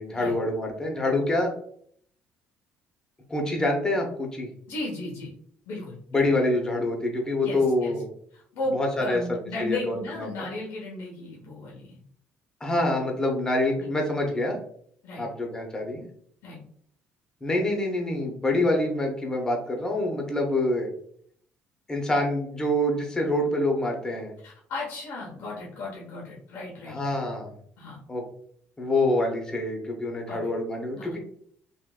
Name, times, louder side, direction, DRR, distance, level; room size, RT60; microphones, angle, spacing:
voice 1, 0.0-1.5 3.3-4.5 6.1-8.1 8.7-9.2 9.6-10.6 12.6-14.6 15.2-16.1 17.4-20.9 21.9-24.3 26.9-27.5 28.1-28.2 28.8-31.2, left 1 dB, 15° left, 1 dB, 0.7 m, -26 dB
voice 2, 4.7-5.3 5.6-6.2 7.4-7.9 8.3-12.0 13.8-13.9 15.0-15.3 16.4-16.6 24.4-27.2 27.8-28.0 30.3-30.5 30.9-31.1, left 2 dB, 75° left, -3 dB, 0.9 m, -35 dB
3.6 x 2.5 x 2.2 m, 0.63 s
cardioid pair, 125°, 4 cm